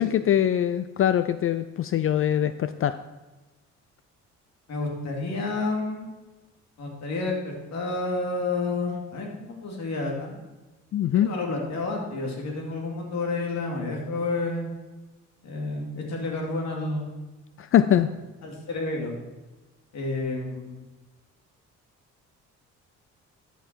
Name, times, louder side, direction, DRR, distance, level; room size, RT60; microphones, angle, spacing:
voice 1, 0.0-3.0 10.9-11.3 17.6-18.1, left 10 dB, 45° left, 12 dB, 0.4 m, -23 dB
voice 2, 4.7-6.1 6.8-10.4 11.2-14.7 15.4-17.1 18.4-19.1 19.9-20.8, left 3 dB, 65° left, 0 dB, 2.5 m, -30 dB
12.5 x 5.8 x 4.5 m, 1.1 s
cardioid pair, 90°, 30 cm